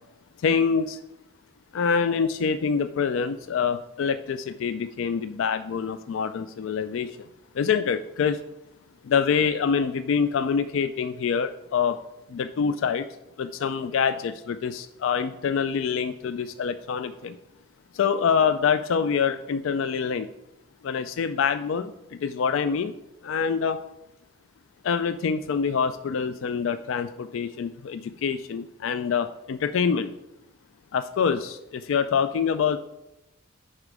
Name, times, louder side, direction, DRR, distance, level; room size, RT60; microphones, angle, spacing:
voice 1, 0.4-1.0 1.7-7.3 7.5-8.4 9.0-12.0 12.3-13.1 13.4-17.4 17.9-20.3 20.8-22.9 23.2-23.8 24.8-30.1 30.9-32.8, left 6 dB, 70° left, 12 dB, 0.3 m, -25 dB
10.0 x 4.3 x 4.8 m, 0.92 s
head